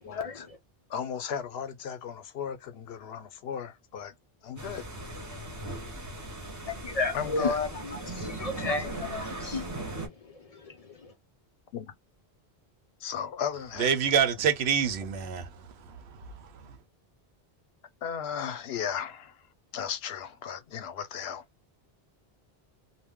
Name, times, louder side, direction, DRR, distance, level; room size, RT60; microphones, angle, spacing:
voice 1, 0.0-0.5 0.9-4.1 4.4-4.8 7.1-7.6 11.7-11.9 13.0-13.9 18.0-19.4 19.7-21.4, left 8 dB, 80° left, 0.8 m, -35 dB
sound 1, 4.6-10.1, right 2 dB, 20° right, 0.8 m, -38 dB
voice 2, 6.8-7.7 8.2-9.6 10.0-10.1, left 3 dB, 55° left, 0.4 m, -31 dB
voice 3, 13.8-16.0 16.4-16.5, right 7 dB, 85° right, 0.9 m, -27 dB
2.5 x 2.1 x 3.5 m
omnidirectional pair, 1.1 m